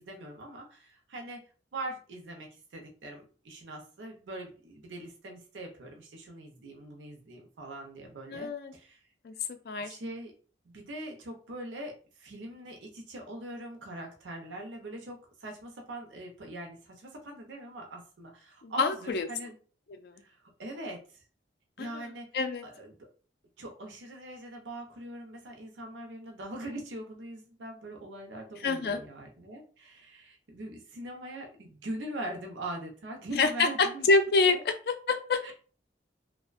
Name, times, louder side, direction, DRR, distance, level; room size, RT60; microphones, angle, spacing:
voice 1, 0.0-1.4 1.7-9.0 9.8-10.3 10.6-19.6 20.2-21.2 21.8-22.3 22.6-23.1 23.6-34.1 34.5-34.6 35.4-35.5, right 1 dB, 90° right, 2 dB, 0.6 m, -42 dB
voice 2, 8.3-8.7 9.2-9.3 9.7-10.0 18.6-19.3 20.0-20.2 21.8-22.0 22.3-22.6 28.6-29.0 33.4-35.5, left 3 dB, 60° left, 8 dB, 0.3 m, -27 dB
2.5 x 2.1 x 2.4 m, 0.40 s
head